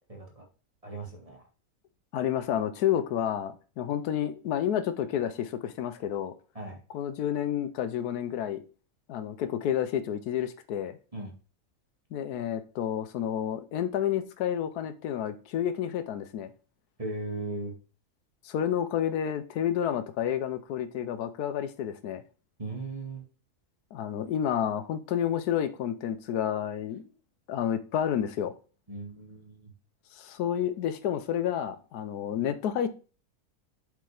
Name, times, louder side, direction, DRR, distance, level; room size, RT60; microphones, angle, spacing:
voice 1, 0.1-0.4 0.8-1.5 6.5-6.8 11.1-11.3 17.0-17.7 22.6-23.2 28.9-29.7, right 2 dB, 25° right, 1.7 m, -37 dB
voice 2, 2.1-6.3 6.9-8.6 9.1-11.0 12.1-16.5 18.4-22.2 23.9-27.1 27.5-28.5 30.1-32.9, left 10 dB, 85° left, 1.2 m, -30 dB
7.5 x 5.2 x 3.4 m
omnidirectional pair, 1.6 m